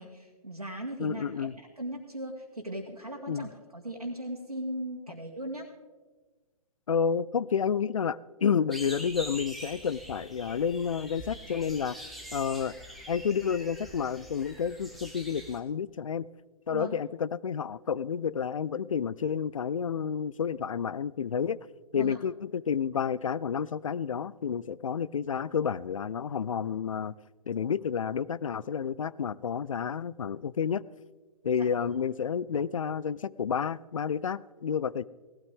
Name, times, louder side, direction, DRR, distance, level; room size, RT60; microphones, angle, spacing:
voice 1, 0.0-5.7 16.7-17.0 21.9-22.2 31.5-31.7, right 1 dB, 80° right, 2.0 m, -38 dB
voice 2, 1.0-1.5 3.3-3.5 6.9-12.0 12.3-12.8 13.1-16.2 16.7-21.6 21.9-27.2 27.5-30.8 31.4-35.0, left 7 dB, 60° left, 0.4 m, -30 dB
sound 1, 8.7-15.6, equal, ahead, 1.2 m, -44 dB
17.5 x 13.0 x 3.6 m
figure-of-eight pair, 130°, 19 cm